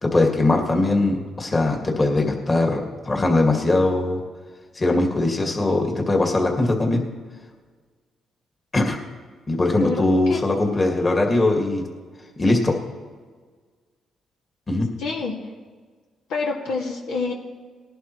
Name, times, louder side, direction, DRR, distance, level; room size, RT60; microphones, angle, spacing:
voice 1, 0.0-4.2 4.7-7.0 8.7-9.0 9.5-11.8 12.4-12.7 14.7-14.9, left 2 dB, 30° left, 1 dB, 2.2 m, -20 dB
voice 2, 15.0-15.3 16.3-17.3, left 4 dB, 90° left, -2 dB, 2.1 m, -26 dB
19.5 x 11.5 x 3.2 m, 1.5 s
cardioid pair, 90°, 0 cm